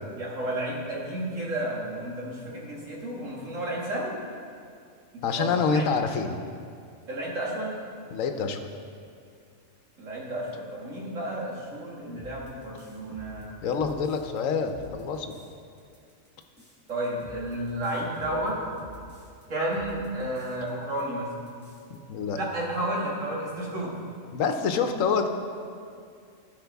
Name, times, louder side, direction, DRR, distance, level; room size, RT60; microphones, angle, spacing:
voice 1, 0.2-4.2 5.1-5.9 7.1-7.8 10.0-13.5 16.9-18.6 19.5-21.3 22.3-24.0, right 1 dB, 75° right, -4 dB, 2.2 m, -32 dB
voice 2, 5.2-6.4 8.1-8.7 13.6-15.3 21.9-22.4 24.3-25.3, left 5 dB, 80° left, 6 dB, 1.1 m, -27 dB
sound 1, 12.1-14.4 14.7-15.5 15.8-19.4 19.7-20.7 21.0-21.1 21.3-22.0, left 1 dB, 10° right, 1.2 m, -49 dB
16.0 x 5.6 x 3.5 m, 2.3 s
omnidirectional pair, 1.4 m